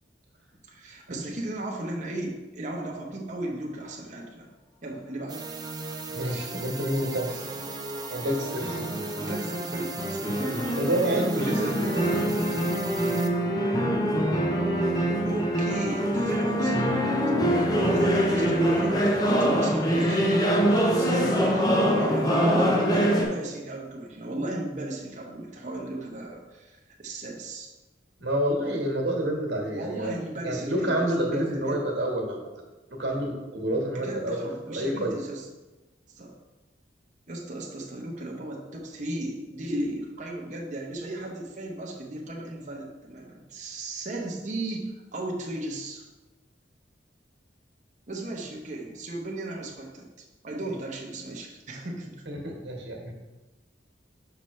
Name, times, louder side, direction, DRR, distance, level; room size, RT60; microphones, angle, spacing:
voice 1, 0.7-4.5 4.8-5.4 8.2-8.4 9.1-10.6 11.1-12.6 15.2-17.1 17.9-20.7 21.0-21.7 22.0-27.7 29.7-31.9 34.0-35.5 36.1-36.3 37.3-46.1 48.1-50.1 50.4-52.2, right 1 dB, 40° right, -2 dB, 1.0 m, -35 dB
sound 1, 5.3-13.3, right 4 dB, 20° right, 0.4 m, -37 dB
voice 2, 6.1-7.5 8.1-8.8 10.6-11.9 12.9-13.3 17.8-18.0 28.2-30.1 30.4-32.4 33.0-35.2 52.3-53.2, right 1 dB, 70° right, 0 dB, 1.5 m, -29 dB
sound 2, 7.0-23.2, equal, 20° left, 0.7 m, -24 dB
5.9 x 5.7 x 3.2 m, 1.1 s
head